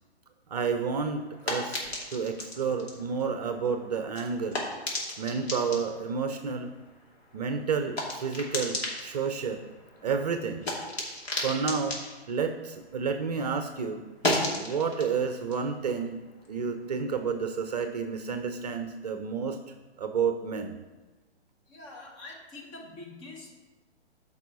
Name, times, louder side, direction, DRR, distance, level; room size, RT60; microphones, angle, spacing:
voice 1, 0.5-4.6 5.2-6.7 7.3-9.6 10.0-10.7 11.4-12.0 12.3-14.0 14.6-16.2 16.5-19.6 20.0-20.8, right 5 dB, 40° right, 7 dB, 0.7 m, -30 dB
sound 1, 0.6-13.4 13.7-16.9, left 1 dB, 65° left, 2.7 m, -36 dB
voice 2, 21.7-23.6, left 2 dB, 30° left, -1 dB, 2.0 m, -45 dB
13.5 x 5.5 x 4.0 m, 1.2 s
figure-of-eight pair, 125°, 33 cm